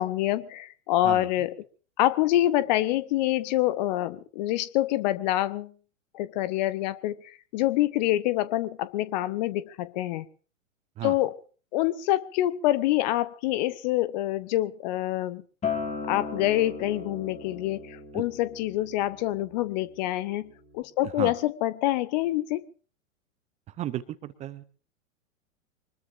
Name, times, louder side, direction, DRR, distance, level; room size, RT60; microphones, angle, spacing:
voice 1, 0.0-1.5 2.0-5.7 6.1-10.2 11.0-11.4 11.7-15.4 16.1-22.6, left 15 dB, 35° left, 18 dB, 0.7 m, -26 dB
Acoustic guitar, 15.6-20.8, left 5 dB, 15° left, 2.6 m, -37 dB
voice 2, 21.0-21.3 23.8-24.6, right 13 dB, 15° right, 15 dB, 0.7 m, -34 dB
24.5 x 20.5 x 2.6 m, 0.38 s
figure-of-eight pair, 105°, 41 cm